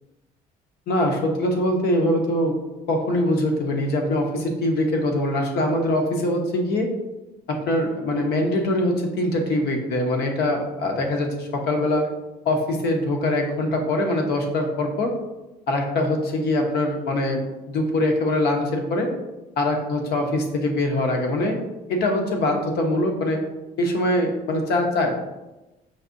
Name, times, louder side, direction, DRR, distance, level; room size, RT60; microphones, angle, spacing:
voice 1, 0.9-2.5 2.9-6.9 7.5-12.0 12.4-15.1 15.7-19.1 19.6-21.6 21.9-23.4 23.8-25.1, left 1 dB, 70° left, 2 dB, 0.8 m, -23 dB
5.6 x 2.7 x 2.6 m, 1.0 s
cardioid pair, 110°, 17 cm